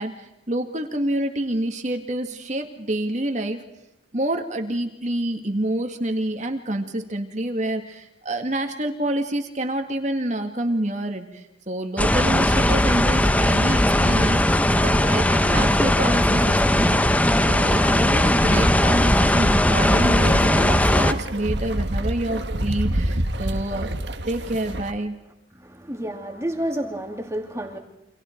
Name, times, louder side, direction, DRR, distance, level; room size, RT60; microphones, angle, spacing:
voice 1, 0.0-3.6 4.1-23.9 24.3-25.2, right 1 dB, 40° right, 5 dB, 2.1 m, -28 dB
sound 1, 12.0-21.1, left 1 dB, 10° left, 0.9 m, -18 dB
sound 2, 19.7-24.9, right 1 dB, 70° right, 1.6 m, -27 dB
voice 2, 25.5-27.8, right 1 dB, 15° right, 3 dB, 2.9 m, -30 dB
30.0 x 26.5 x 4.6 m, 0.90 s
head